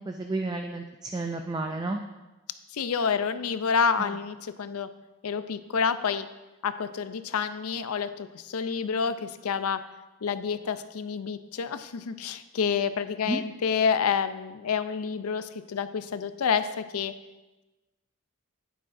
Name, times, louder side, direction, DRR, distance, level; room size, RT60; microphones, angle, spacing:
voice 1, 0.0-2.0 13.3-13.4, right 2 dB, 20° right, 4 dB, 0.3 m, -31 dB
voice 2, 2.7-4.9 5.2-6.3 6.6-9.8 10.2-17.1, left 6 dB, 85° left, 12 dB, 0.5 m, -28 dB
10.0 x 9.7 x 2.6 m, 1.1 s
head